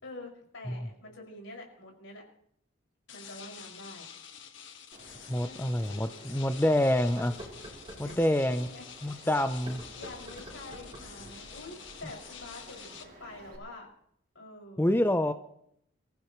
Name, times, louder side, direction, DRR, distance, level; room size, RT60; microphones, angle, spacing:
voice 1, 0.0-2.2 3.1-4.1 5.3-6.6 8.0-8.3 8.6-9.3 9.9-13.9 14.3-15.0, left 2 dB, 85° left, -1 dB, 6.1 m, -47 dB
sound 1, 3.1-13.0, left 8 dB, 70° left, 1.6 m, -48 dB
Bird vocalization bird call bird song, 4.9-13.6, right 1 dB, 45° right, 3.6 m, -53 dB
sound 2, 5.1-5.2 5.7-5.8 7.0-8.2 9.5-11.2, right 1 dB, 30° right, 4.3 m, -47 dB
voice 2, 5.3-7.4 8.0-8.7 9.0-9.8 14.8-15.3, left 1 dB, 10° left, 9 dB, 0.6 m, -27 dB
25.5 x 15.0 x 3.2 m, 0.72 s
head